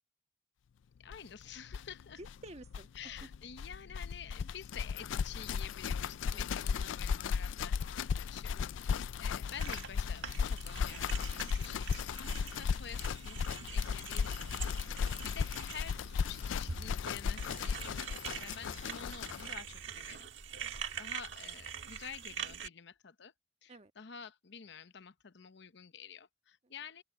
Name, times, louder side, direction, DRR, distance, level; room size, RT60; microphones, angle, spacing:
voice 1, 1.0-2.2 2.9-20.3 21.0-23.3 23.6-27.0, left 7 dB, 65° left, 0.8 m, -49 dB
sound 1, 1.1-1.2 1.4-1.5 1.7-19.5, left 6 dB, 85° left, 0.4 m, -36 dB
voice 2, 2.2-2.9 3.2-3.3 6.3-6.7 12.9-13.0 20.6-20.9 23.7-23.9 26.6-26.7, right 1 dB, 35° right, 1.6 m, -53 dB
sound 2, 9.5-22.7, right 7 dB, 70° right, 1.6 m, -45 dB
sound 3, 11.2-11.7 12.0-12.3 13.7-14.2 14.8-15.8 16.4-16.8 17.2-20.4, left 1 dB, 10° left, 3.1 m, -69 dB
open air
head